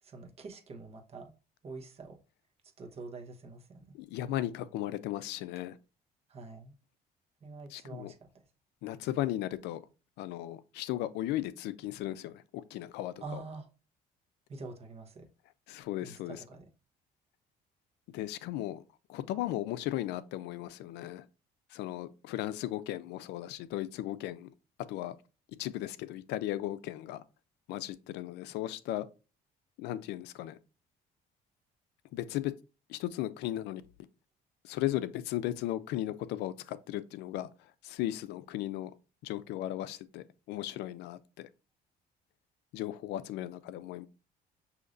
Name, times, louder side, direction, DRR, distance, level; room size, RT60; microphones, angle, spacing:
voice 1, 0.0-1.3 1.6-2.2 2.8-3.9 6.3-6.7 7.4-8.3 13.2-13.7 14.5-15.3 16.0-16.7, right 3 dB, 35° right, 1.1 m, -45 dB
voice 2, 3.9-5.8 7.7-8.1 8.8-9.8 10.2-13.4 15.7-16.4 18.1-18.8 19.1-21.2 21.7-24.5 24.9-25.2 25.6-27.2 27.7-29.1 29.8-30.6 32.1-32.5 32.9-33.8 34.6-37.5 37.8-38.9 39.2-41.5 42.7-44.1, left 14 dB, 85° left, 0.4 m, -36 dB
6.3 x 2.8 x 2.6 m
cardioid pair, 110°, 17 cm